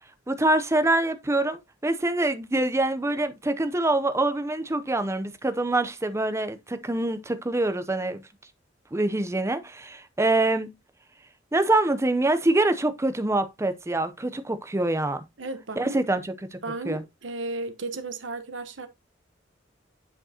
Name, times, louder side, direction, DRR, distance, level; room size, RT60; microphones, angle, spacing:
voice 1, 0.3-8.2 8.9-10.7 11.5-15.2 15.8-16.2 16.5-16.6 16.9-17.0, right 2 dB, 15° right, 0.6 m, -25 dB
voice 2, 15.4-16.0 16.6-18.9, right 3 dB, 70° right, 1.1 m, -34 dB
8.9 x 5.2 x 2.8 m
head